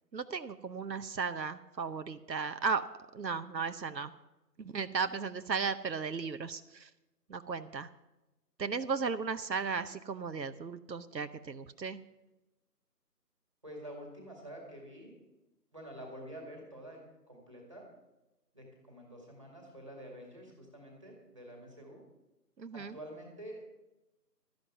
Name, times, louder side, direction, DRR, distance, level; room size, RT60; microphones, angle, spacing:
voice 1, 0.1-2.9 3.1-4.1 4.6-6.9 7.3-7.9 8.6-12.0 22.6-22.9, right 5 dB, 85° right, 10 dB, 0.9 m, -35 dB
voice 2, 13.6-15.1 15.7-17.9 18.5-22.0 22.7-23.7, right 1 dB, 20° right, 1 dB, 2.0 m, -48 dB
13.0 x 10.5 x 6.0 m, 1.0 s
figure-of-eight pair, 170°, 50 cm